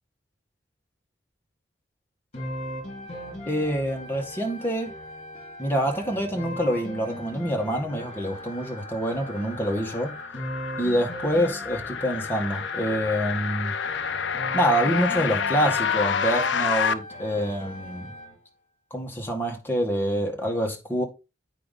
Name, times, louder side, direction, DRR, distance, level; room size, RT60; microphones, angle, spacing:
sound 1, 2.3-18.4, equal, 35° left, 2.4 m, -39 dB
voice 1, 3.5-4.9 5.6-10.1 10.8-13.7 14.5-18.1 18.9-21.0, equal, 10° left, 1.8 m, -26 dB
sound 2, 8.6-16.9, left 6 dB, 75° left, 0.6 m, -29 dB
8.4 x 5.2 x 4.1 m
head